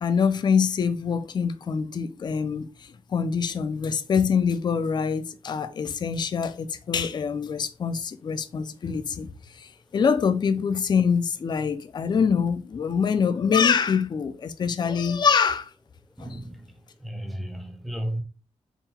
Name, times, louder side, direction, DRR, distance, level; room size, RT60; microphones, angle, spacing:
voice 1, 0.0-15.7, left 6 dB, 40° left, 0.4 m, -25 dB
voice 2, 16.2-16.7 17.0-18.2, right 1 dB, ahead, 0.6 m, -33 dB
3.7 x 2.2 x 4.2 m
wide cardioid pair, 125°, 12 cm